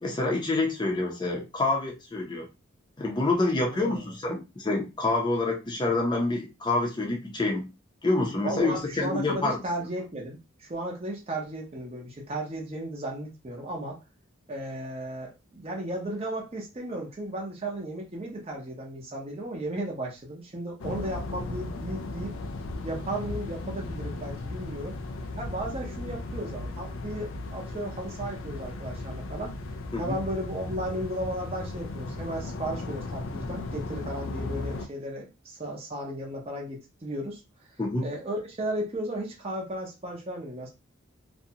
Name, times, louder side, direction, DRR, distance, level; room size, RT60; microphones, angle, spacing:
voice 1, 0.0-2.5 3.0-7.7 8.0-9.6 29.9-30.2 37.8-38.1, left 2 dB, 20° left, -1 dB, 0.6 m, -27 dB
voice 2, 3.7-4.1 8.4-14.0 14.5-22.3 22.8-25.0 25.4-29.5 30.0-37.4 38.0-40.7, right 1 dB, 30° right, -2 dB, 0.7 m, -35 dB
sound 1, 20.8-34.9, left 2 dB, 75° left, 0.4 m, -36 dB
2.5 x 2.1 x 2.7 m, 0.26 s
head